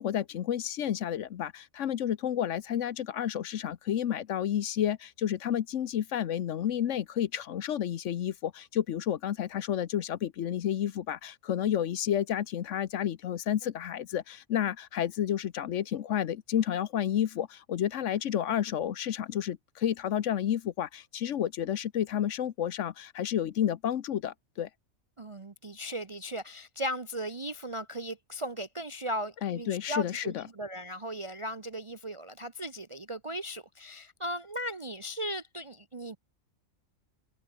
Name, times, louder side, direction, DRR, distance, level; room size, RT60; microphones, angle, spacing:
voice 1, 0.0-24.7 29.4-30.4, left 10 dB, 65° left, 1.1 m, -31 dB
voice 2, 25.2-36.2, equal, 30° right, 0.7 m, -37 dB
omnidirectional pair, 1.4 m